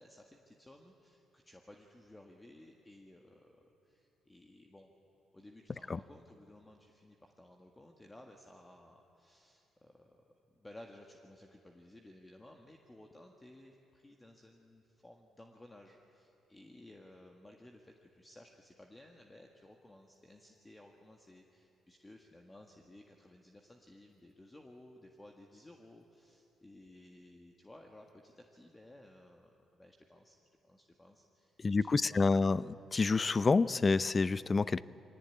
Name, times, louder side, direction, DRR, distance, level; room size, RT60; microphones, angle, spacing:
voice 1, 0.0-5.0 5.3-30.4 30.6-32.5, left 1 dB, 15° left, 2 dB, 1.7 m, -57 dB
voice 2, 31.6-32.6 32.9-34.8, left 4 dB, 30° left, 18 dB, 0.5 m, -28 dB
23.0 x 18.0 x 9.8 m, 2.8 s
cardioid pair, 90°, 0 cm